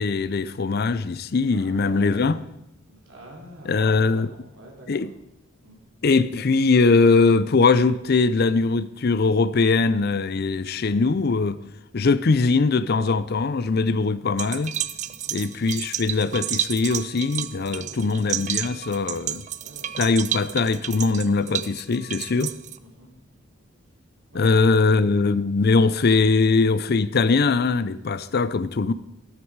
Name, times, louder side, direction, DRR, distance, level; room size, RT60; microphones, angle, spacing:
voice 1, 0.0-2.4 3.6-4.3 4.9-5.1 6.0-11.6 11.9-14.7 15.3-19.4 20.0-22.5 24.3-28.9, left 4 dB, 50° left, 0.5 m, -21 dB
voice 2, 1.5-2.4 2.9-5.1 5.6-5.8 15.1-15.3 17.7-18.0 19.6-20.0 23.0-23.1 24.3-25.1, right 1 dB, 70° right, 3.2 m, -45 dB
sound 1, 14.4-22.8, right 11 dB, 35° right, 0.4 m, -31 dB
13.0 x 12.5 x 4.7 m
head